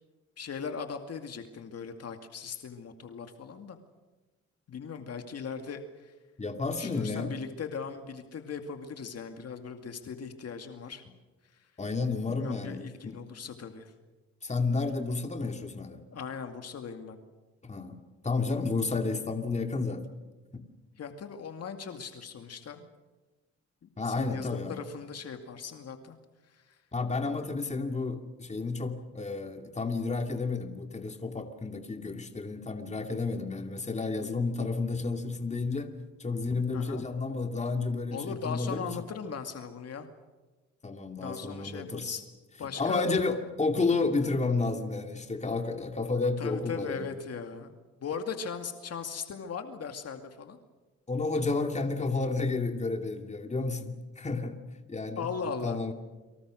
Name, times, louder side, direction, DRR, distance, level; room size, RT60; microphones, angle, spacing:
voice 1, 0.4-3.8 4.7-6.1 6.7-11.0 12.3-13.9 16.1-17.2 21.0-22.9 23.8-26.2 26.5-26.8 36.7-37.1 38.1-40.1 41.2-42.2 42.6-43.1 46.4-50.6 55.2-55.8, left 6 dB, 55° left, 6 dB, 2.3 m, -39 dB
voice 2, 6.4-7.3 11.8-13.2 14.4-16.0 17.6-20.0 20.5-20.6 24.0-24.8 26.9-35.9 36.2-38.9 40.8-42.1 42.8-47.1 51.1-54.6 54.9-55.3 55.6-55.9, left 3 dB, 25° left, 5 dB, 2.5 m, -31 dB
30.0 x 24.5 x 6.4 m, 1.2 s
cardioid pair, 90°, 30 cm